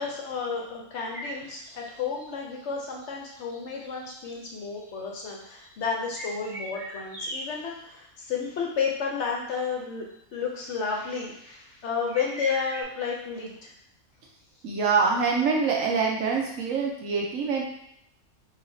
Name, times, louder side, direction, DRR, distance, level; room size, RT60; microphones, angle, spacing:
voice 1, 0.0-10.0 10.3-13.7, left 5 dB, 65° left, 0 dB, 0.8 m, -32 dB
sound 1, 1.1-7.9 8.3-8.5 8.8-8.9 10.1-10.2 12.1-12.8, right 1 dB, 30° right, 1.4 m, -40 dB
voice 2, 14.6-17.6, right 5 dB, 70° right, 0 dB, 1.0 m, -25 dB
4.4 x 2.8 x 2.6 m, 0.77 s
omnidirectional pair, 1.5 m